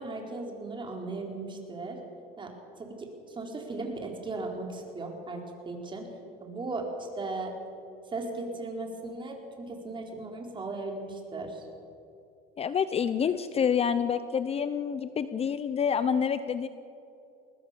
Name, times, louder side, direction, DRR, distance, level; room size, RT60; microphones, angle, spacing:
voice 1, 0.0-2.0 2.4-2.5 2.8-3.1 3.4-6.1 6.4-7.5 8.1-11.6, right 3 dB, 25° right, 1 dB, 4.4 m, -37 dB
voice 2, 12.6-16.7, left 7 dB, 30° left, 13 dB, 0.8 m, -27 dB
22.0 x 19.5 x 7.0 m, 2.7 s
supercardioid pair, 105°, 19 cm